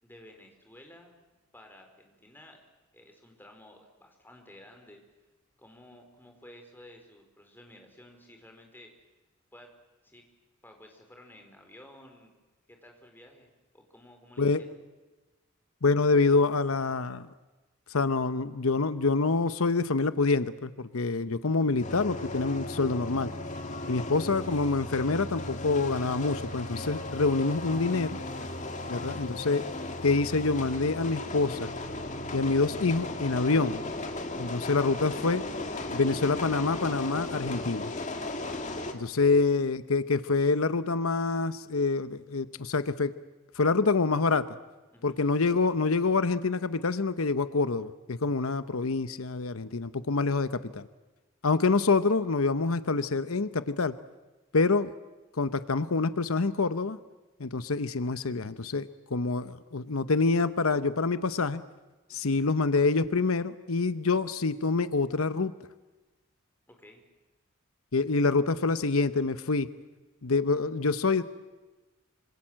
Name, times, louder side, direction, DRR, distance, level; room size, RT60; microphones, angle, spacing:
voice 1, 0.0-1.2 1.5-2.6 2.9-5.0 5.6-9.1 9.5-9.7 10.0-10.2 10.6-12.3 12.7-14.8 23.8-24.0 39.1-39.4 44.9-45.2 62.1-62.4 66.7-67.0, left 1 dB, 10° left, 3 dB, 4.4 m, -53 dB
voice 2, 15.8-17.3 17.9-23.3 23.9-28.2 28.9-29.7 30.0-31.7 32.3-33.8 34.4-35.4 35.9-37.9 38.9-43.1 43.6-44.5 45.0-50.9 51.4-53.9 54.5-54.9 55.4-57.0 57.4-61.6 62.1-65.5 67.9-69.7 70.2-71.2, left 3 dB, 85° left, 13 dB, 0.9 m, -26 dB
sound 1, 21.8-38.9, left 2 dB, 35° left, 2.2 m, -36 dB
26.0 x 26.0 x 7.6 m, 1.2 s
head